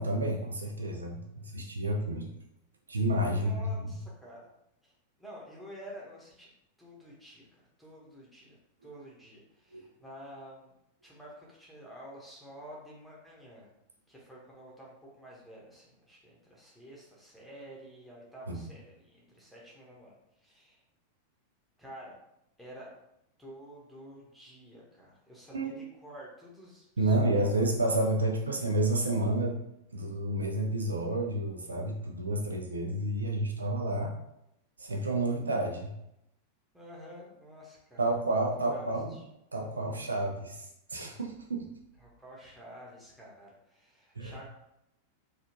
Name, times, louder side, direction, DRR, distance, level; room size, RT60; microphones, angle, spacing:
voice 1, 0.0-2.3 2.9-3.7 9.7-9.9 18.5-18.6 25.5-25.8 27.0-29.6 29.9-34.2 34.8-35.9 38.0-39.2 39.5-41.7 44.2-44.3, right 1 dB, 75° right, 2 dB, 0.4 m, -30 dB
voice 2, 1.4-2.3 3.3-4.4 4.8-4.9 5.2-6.5 6.8-10.7 11.0-13.7 14.1-20.8 21.8-22.1 22.6-22.9 23.4-25.7 26.0-27.3 36.7-38.0 38.5-39.2 42.0-44.5, equal, ahead, -4 dB, 1.2 m, -50 dB
4.1 x 2.4 x 2.9 m, 0.83 s
figure-of-eight pair, 90°, 0 cm